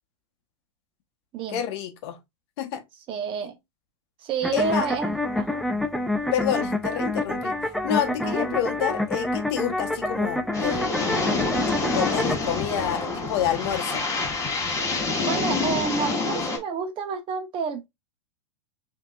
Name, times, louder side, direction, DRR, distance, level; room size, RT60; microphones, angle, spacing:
voice 1, 1.5-2.2 2.6-2.8 4.5-4.9 6.3-7.6 7.8-11.1 11.9-14.1, left 9 dB, 60° left, 0.9 m, -28 dB
voice 2, 3.1-3.6 4.2-5.6 8.2-8.6 15.2-17.9, right 6 dB, 35° right, 1.0 m, -30 dB
sound 1, 4.4-12.4, left 2 dB, ahead, 0.4 m, -27 dB
sound 2, 10.5-16.6, left 3 dB, 20° left, 1.6 m, -27 dB
5.5 x 2.9 x 2.3 m
hypercardioid pair, 125°, 16 cm